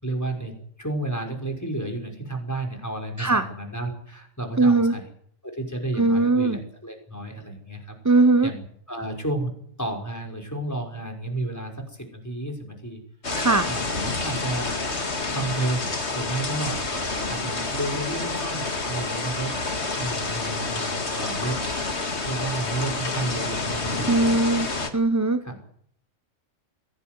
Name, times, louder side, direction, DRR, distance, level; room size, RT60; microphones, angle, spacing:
voice 1, 0.0-5.0 5.4-9.5 9.8-13.0 13.6-14.8 15.3-16.8 17.3-19.6 20.0-21.6 22.3-24.4 25.4-25.6, right 2 dB, 10° left, 3 dB, 5.9 m, -32 dB
voice 2, 4.6-4.9 6.0-6.6 8.0-8.5 13.4-13.7 24.1-24.7 24.9-25.4, right 3 dB, 15° right, 9 dB, 1.0 m, -19 dB
sound 1, 13.2-24.9, left 3 dB, 55° left, 2.6 m, -29 dB
22.5 x 18.0 x 9.6 m, 0.67 s
omnidirectional pair, 1.4 m